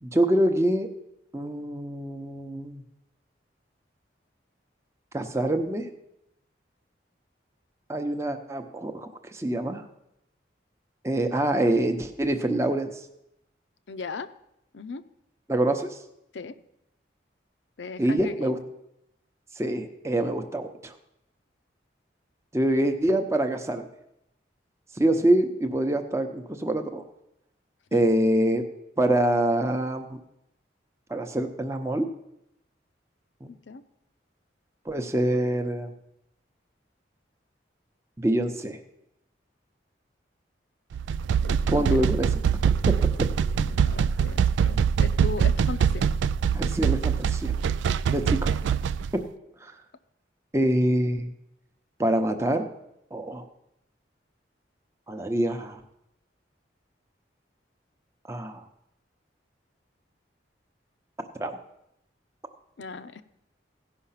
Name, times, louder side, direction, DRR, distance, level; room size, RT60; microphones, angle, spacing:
voice 1, 0.0-0.9 1.3-2.8 5.1-5.9 7.9-9.8 11.0-12.9 15.5-15.9 18.0-18.6 19.6-20.9 22.5-23.9 25.0-27.0 27.9-28.6 29.0-30.2 31.1-32.1 33.4-33.5 34.9-35.9 38.2-38.8 41.7-42.3 42.7-42.9 46.5-47.5 48.1-48.4 49.6-49.7 50.5-51.3 52.0-52.7 53.1-53.5 55.1-55.8 58.3-58.6 61.4-61.6, right 1 dB, 15° right, 5 dB, 0.7 m, -25 dB
voice 2, 13.9-14.3 14.7-15.0 16.3-16.6 17.8-18.6 27.9-28.0 33.5-33.8 41.4-42.0 43.4-46.1 62.8-63.2, left 4 dB, 75° left, 12 dB, 0.6 m, -37 dB
sound 1, 40.9-49.1, right 7 dB, 80° right, 0.3 m, -24 dB
16.0 x 5.7 x 5.7 m, 0.83 s
head